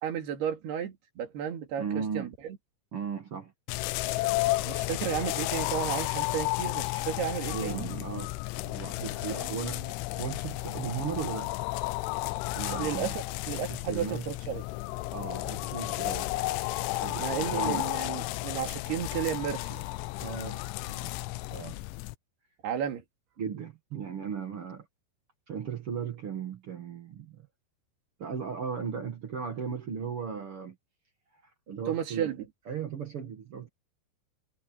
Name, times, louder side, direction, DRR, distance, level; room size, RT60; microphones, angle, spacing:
voice 1, 0.0-2.3 4.6-7.9 9.3-9.8 12.7-14.6 17.2-19.9 22.6-23.0 31.9-32.4, right 9 dB, 60° right, 4.1 m, -33 dB
voice 2, 1.8-2.3 2.9-3.5 7.5-8.4 8.6-9.8 10.1-11.5 12.5-13.1 13.7-14.3 15.1-16.3 16.9-17.9 20.2-21.1 21.5-21.8 23.4-24.9 25.5-27.5 28.2-30.7 31.4-32.3 32.6-33.7, right 6 dB, 90° right, 1.2 m, -36 dB
sound 1, 3.7-22.2, left 20 dB, 85° left, 3.0 m, -33 dB
omnidirectional pair, 5.5 m